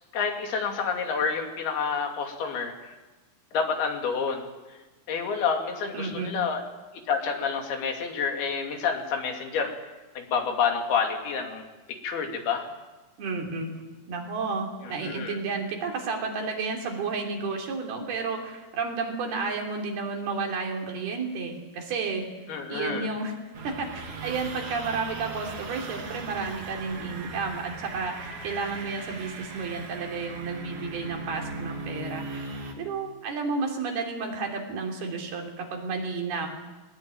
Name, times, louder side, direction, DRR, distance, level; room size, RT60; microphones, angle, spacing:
voice 1, 0.1-2.9 3.5-4.5 5.1-6.6 7.1-9.7 10.2-11.6 11.9-12.7 15.0-15.4 22.5-23.1, left 6 dB, 80° left, 3 dB, 4.5 m, -28 dB
voice 2, 5.9-6.3 13.2-13.7 14.1-22.3 22.7-23.3 23.6-32.5 32.8-36.5, right 4 dB, 80° right, 1 dB, 5.2 m, -32 dB
sound 1, 23.5-32.7, right 3 dB, 55° right, 3.7 m, -38 dB
20.5 x 19.5 x 9.0 m, 1.2 s
omnidirectional pair, 4.4 m